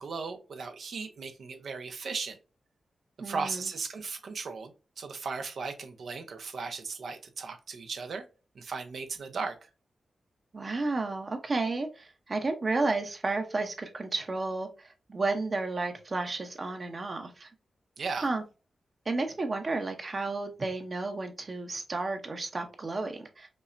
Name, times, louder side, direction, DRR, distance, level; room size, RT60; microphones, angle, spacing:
voice 1, 0.0-2.4 3.2-8.2 8.5-9.7 18.0-18.3, right 4 dB, 70° right, 0.7 m, -36 dB
voice 2, 3.2-3.7 10.5-17.5 18.2-18.4 19.1-23.5, right 3 dB, 40° right, 0.8 m, -32 dB
5.2 x 2.1 x 2.5 m
cardioid pair, 80°, 0 cm